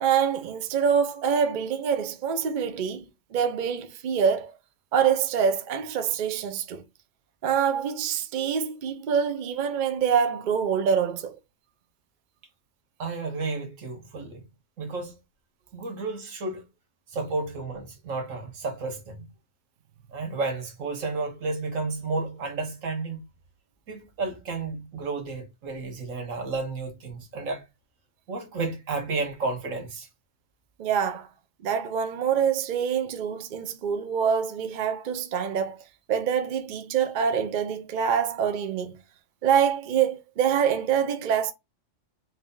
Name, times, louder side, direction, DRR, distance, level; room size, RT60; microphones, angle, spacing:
voice 1, 0.0-4.5 4.9-6.8 7.4-11.4 30.8-31.3 31.6-35.8 36.1-39.0 39.4-41.5, right 7 dB, 50° right, 0.6 m, -25 dB
voice 2, 13.0-14.5 14.8-15.2 15.7-16.6 17.1-19.3 20.1-23.2 23.9-27.7 28.3-30.1, right 3 dB, 85° right, 1.4 m, -32 dB
3.3 x 2.7 x 3.7 m
omnidirectional pair, 1.3 m